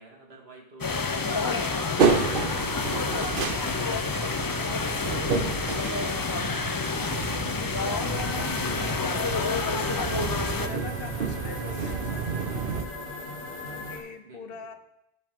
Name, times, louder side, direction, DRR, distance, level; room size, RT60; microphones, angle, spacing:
voice 1, 0.0-2.0 2.4-3.0 3.5-4.7 5.0-6.1 7.6-9.2 14.2-14.6, right 3 dB, 80° right, 0 dB, 2.0 m, -49 dB
sound 1, 0.8-10.7, left 4 dB, 35° left, 0.3 m, -28 dB
sound 2, 2.0-12.8, right 5 dB, 60° right, 0.9 m, -30 dB
voice 2, 2.8-3.3 3.6-3.9 6.7-8.8 9.6-10.1 10.5-12.9 13.6-14.7, left 6 dB, 65° left, 8 dB, 1.0 m, -43 dB
sound 3, 8.0-14.0, left 2 dB, 85° left, 2.2 m, -38 dB
15.5 x 5.5 x 3.6 m, 0.81 s
omnidirectional pair, 1.0 m